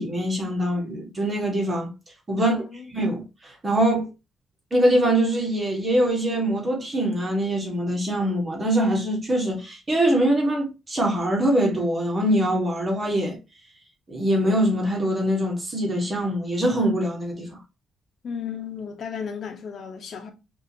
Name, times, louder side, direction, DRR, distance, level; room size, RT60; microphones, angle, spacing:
voice 1, 0.0-1.9 2.3-2.5 2.9-4.1 4.7-13.4 14.1-17.6, right 1 dB, 30° right, 1.7 m, -23 dB
voice 2, 2.4-2.9 18.2-20.3, left 7 dB, 60° left, 1.0 m, -34 dB
5.2 x 2.8 x 2.8 m
cardioid pair, 90°, 0 cm